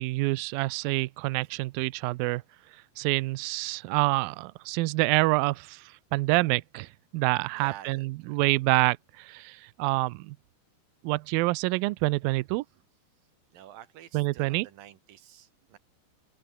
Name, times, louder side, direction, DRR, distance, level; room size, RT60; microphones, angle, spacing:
voice 1, 0.0-2.4 3.0-5.8 6.1-10.4 11.0-12.6 14.1-14.7, right 22 dB, 90° right, 2.0 m, -27 dB
voice 2, 7.5-8.4 13.5-15.8, right 11 dB, 60° right, 3.2 m, -49 dB
open air
omnidirectional pair, 4.8 m